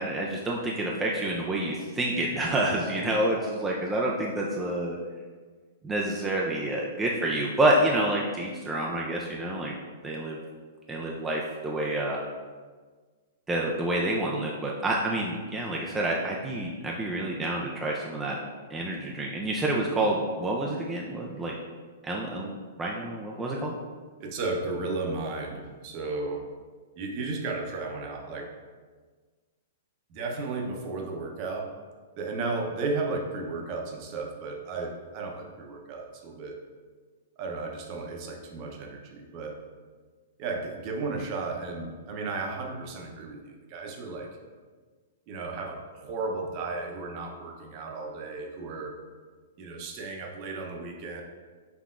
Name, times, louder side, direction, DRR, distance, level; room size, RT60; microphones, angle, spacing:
voice 1, 0.0-5.0 5.8-9.7 10.0-10.4 10.9-12.2 13.5-18.4 18.7-21.5 22.0-23.7, right 1 dB, 10° right, -3 dB, 0.4 m, -28 dB
voice 2, 24.2-26.4 27.0-28.5 30.1-31.7 32.2-36.6 37.4-39.6 40.4-44.3 45.3-49.0 49.6-51.2, right 3 dB, 40° right, 1 dB, 0.7 m, -34 dB
5.7 x 3.4 x 2.5 m, 1.5 s
hypercardioid pair, 145°, 0 cm